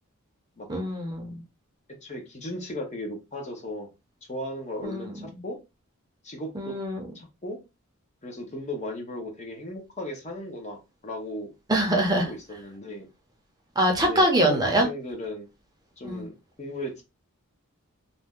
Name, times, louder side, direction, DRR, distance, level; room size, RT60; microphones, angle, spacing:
voice 1, 0.7-1.4 4.8-5.2 6.5-7.1 11.7-12.3 13.8-14.9 16.0-16.3, right 1 dB, 20° right, 0.6 m, -24 dB
voice 2, 2.0-3.9 4.3-5.6 6.2-6.8 7.1-7.6 8.2-11.5 11.9-13.1 14.0-15.5 16.0-17.0, left 1 dB, 30° left, 0.7 m, -36 dB
2.7 x 2.1 x 3.5 m
head